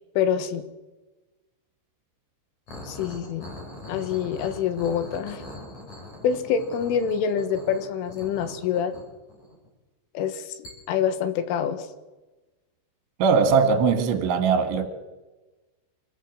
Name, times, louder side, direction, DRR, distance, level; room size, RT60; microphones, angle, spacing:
voice 1, 0.2-0.7 2.9-3.5 3.9-5.4 6.2-8.9 10.2-11.9, left 8 dB, 85° left, 10 dB, 4.0 m, -26 dB
sound 1, 2.7-9.7 10.6-10.7, left 1 dB, 40° left, 6.4 m, -42 dB
voice 2, 13.2-14.9, right 5 dB, 75° right, 8 dB, 3.9 m, -20 dB
27.0 x 15.0 x 7.7 m, 1.1 s
omnidirectional pair, 5.5 m